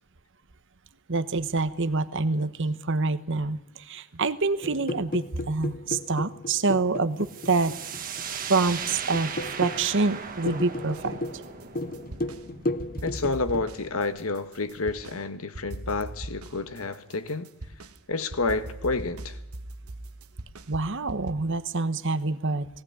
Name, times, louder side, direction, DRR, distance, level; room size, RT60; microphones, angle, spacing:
voice 1, 1.1-3.6 3.9-7.7 8.5-9.3 9.6-11.2 20.7-22.7, right 3 dB, 55° right, 1.1 m, -26 dB
sound 1, 4.6-13.7, left 1 dB, 40° left, 0.8 m, -35 dB
sound 2, 7.2-14.8, right 6 dB, 40° right, 1.8 m, -38 dB
sound 3, 10.9-12.4 12.8-15.2 15.5-21.3, right 1 dB, 80° right, 1.4 m, -40 dB
voice 2, 13.0-17.5 18.1-19.4, left 3 dB, 70° left, 1.4 m, -29 dB
19.0 x 17.5 x 9.7 m
head